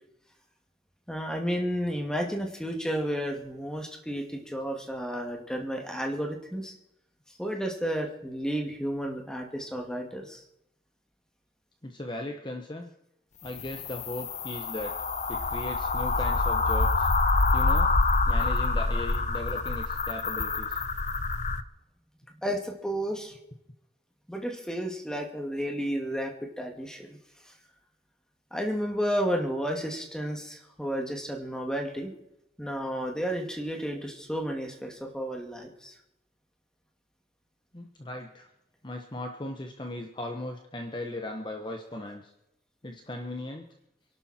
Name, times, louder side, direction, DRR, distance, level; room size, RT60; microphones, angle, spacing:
voice 1, 1.1-6.7 7.4-10.4 22.4-23.4 24.3-27.2 27.5-27.6 28.5-32.1 32.6-35.9, equal, 5° left, 2 dB, 2.4 m, -32 dB
voice 2, 11.8-12.9 13.4-14.9 15.3-17.1 17.5-17.9 18.3-20.8 37.7-38.5 38.8-42.3 42.8-43.7, left 1 dB, 25° left, 4 dB, 1.2 m, -37 dB
sound 1, 13.5-21.6, left 3 dB, 40° left, 0.8 m, -26 dB
28.0 x 12.0 x 4.4 m, 0.87 s
head